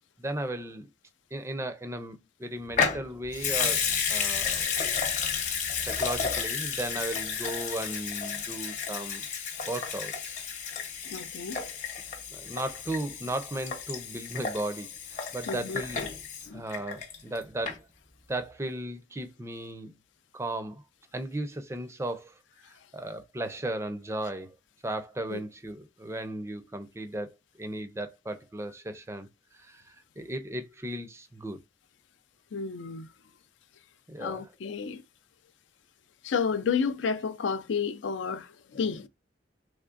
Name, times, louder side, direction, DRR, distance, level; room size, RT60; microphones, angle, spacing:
voice 1, 0.2-0.9 1.3-4.7 5.8-9.3 9.6-10.4 12.3-16.1 16.5-17.9 18.3-20.0 20.3-20.8 21.1-22.3 22.9-24.6 24.8-29.3 29.5-31.6 34.1-34.5, right 1 dB, 15° right, 0.4 m, -36 dB
Water tap faucet / Sink (filling or washing) / Liquid, 2.7-17.4 17.7-17.8, left 6 dB, 40° left, 0.7 m, -32 dB
voice 2, 11.0-11.6 15.5-15.8 16.5-16.6 25.3-25.4 32.5-33.1 34.2-35.0 36.2-39.1, left 5 dB, 85° left, 0.4 m, -31 dB
3.6 x 3.1 x 2.4 m
head